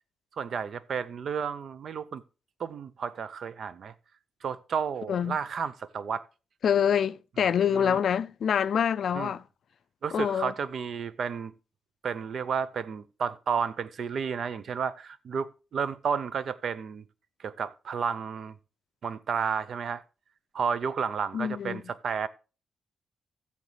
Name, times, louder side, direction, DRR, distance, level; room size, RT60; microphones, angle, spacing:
voice 1, 0.4-2.2 2.6-3.9 4.4-6.2 7.7-8.0 9.1-9.3 10.0-11.5 12.0-17.0 17.4-18.6 19.0-20.0 20.5-22.3, right 6 dB, 60° right, 0.6 m, -32 dB
voice 2, 6.6-9.4 10.1-10.5 21.3-21.8, left 8 dB, 65° left, 0.4 m, -26 dB
13.5 x 7.2 x 3.3 m
cardioid pair, 110°, 0 cm